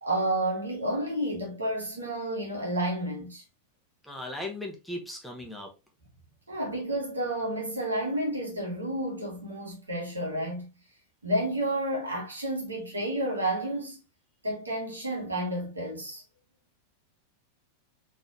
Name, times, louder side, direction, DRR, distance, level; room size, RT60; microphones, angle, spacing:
voice 1, 0.0-3.4 6.5-10.7 11.2-14.0 14.4-16.2, right 1 dB, 80° right, 1.5 m, -30 dB
voice 2, 4.0-5.7, left 1 dB, 5° left, 1.1 m, -37 dB
4.2 x 3.4 x 2.8 m
figure-of-eight pair, 90°, 0 cm